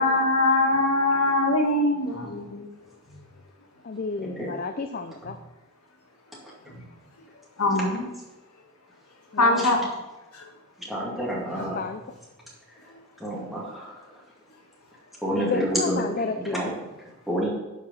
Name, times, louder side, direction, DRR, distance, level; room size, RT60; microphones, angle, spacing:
voice 1, 0.0-2.7 7.6-8.1 9.4-9.9 10.3-10.4, left 2 dB, 85° left, 1 dB, 1.8 m, -22 dB
voice 2, 3.8-5.4 9.3-9.8 11.6-12.0 15.4-16.7, left 4 dB, 40° left, 7 dB, 0.4 m, -31 dB
voice 3, 10.9-11.8 13.2-13.9 15.2-16.0 16.5-16.7 17.3-17.5, equal, ahead, -5 dB, 2.2 m, -28 dB
11.5 x 4.8 x 5.5 m, 1.0 s
head